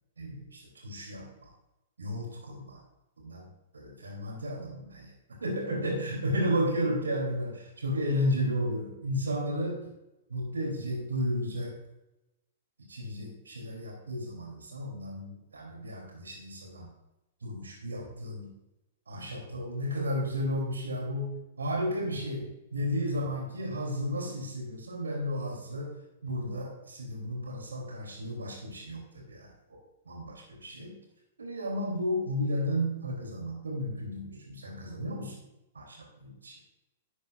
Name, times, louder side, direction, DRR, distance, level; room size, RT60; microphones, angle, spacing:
voice 1, 0.2-1.5 2.0-2.8 3.2-3.5 3.7-9.9 10.3-11.8 12.9-16.9 17.4-18.5 19.1-25.9 26.2-29.8 30.0-31.0 31.4-35.4 35.7-36.6, equal, 75° right, 0 dB, 3.2 m, -33 dB
12.0 x 8.2 x 2.5 m, 0.97 s
figure-of-eight pair, 105°, 0 cm